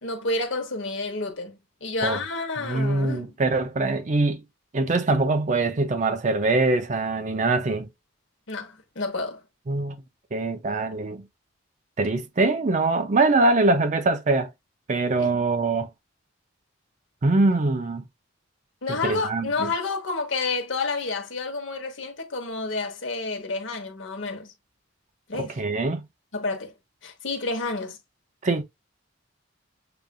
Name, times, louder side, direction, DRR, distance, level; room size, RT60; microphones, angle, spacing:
voice 1, 0.0-3.3 8.5-9.4 15.2-15.4 18.8-24.5 25.3-25.6 26.3-26.7 27.0-28.0, left 3 dB, 65° left, 1.0 m, -30 dB
voice 2, 2.6-4.4 4.7-7.9 9.7-10.0 10.3-11.2 12.0-14.5 14.9-15.9 17.2-18.0 19.0-19.7 25.3-26.0 28.4-28.6, right 3 dB, 35° right, 0.5 m, -23 dB
6.8 x 2.4 x 2.3 m
head